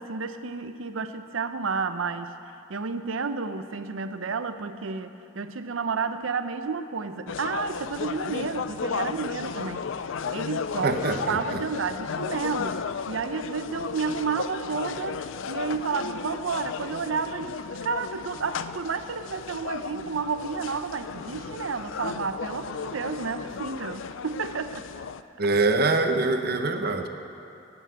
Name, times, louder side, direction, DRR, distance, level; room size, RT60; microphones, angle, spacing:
voice 1, 0.0-2.3 2.7-9.8 10.3-24.9, right 5 dB, 90° right, 10 dB, 0.7 m, -31 dB
sound 1, 7.3-25.2, left 6 dB, 75° left, 0.4 m, -34 dB
voice 2, 10.8-11.6 25.4-27.1, right 3 dB, 50° right, 6 dB, 0.8 m, -24 dB
11.0 x 9.0 x 8.3 m, 2.7 s
head